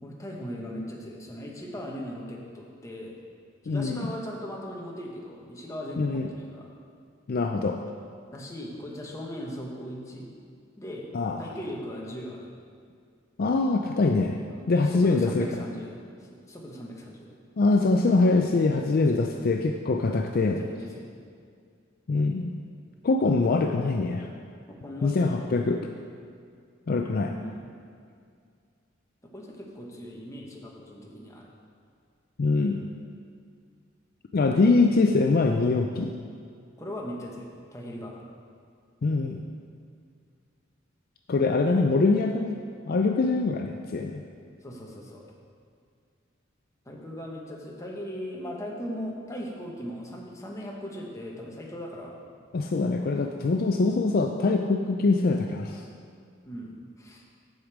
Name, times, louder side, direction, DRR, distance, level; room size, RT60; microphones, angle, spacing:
voice 1, 0.0-3.2 3.6-6.7 8.3-10.3 10.8-11.1 11.4-12.5 14.5-16.0 16.3-17.4 19.1-19.4 20.0-21.1 24.7-25.4 27.2-27.8 29.3-31.5 36.8-38.2 44.6-45.2 46.8-52.2 53.5-53.8 56.4-57.2, equal, 15° left, -2 dB, 1.2 m, -39 dB
voice 2, 3.7-4.1 6.0-6.3 7.3-7.8 11.1-11.4 13.4-14.4 14.7-15.6 17.6-20.6 22.1-22.6 23.0-24.3 25.0-25.9 26.9-27.3 32.4-32.9 34.3-36.1 39.0-39.4 41.3-42.5 42.9-44.2 52.5-55.8, left 3 dB, 50° left, 4 dB, 0.4 m, -23 dB
8.1 x 5.1 x 7.3 m, 2.2 s
head